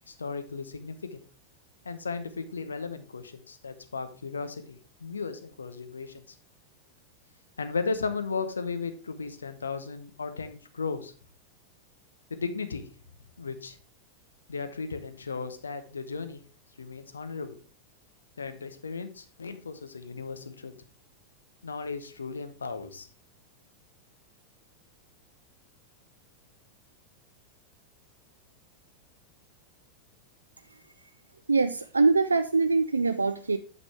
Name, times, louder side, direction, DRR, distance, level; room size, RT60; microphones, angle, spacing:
voice 1, 0.1-1.2 1.8-6.4 7.6-11.1 12.3-12.8 13.4-13.8 14.5-16.4 16.8-17.6 18.4-20.7 21.6-23.1, left 4 dB, 75° left, 9 dB, 0.9 m, -35 dB
voice 2, 31.5-33.6, right 3 dB, 80° right, 10 dB, 0.3 m, -23 dB
8.8 x 6.5 x 3.3 m, 0.38 s
figure-of-eight pair, 90°, 0 cm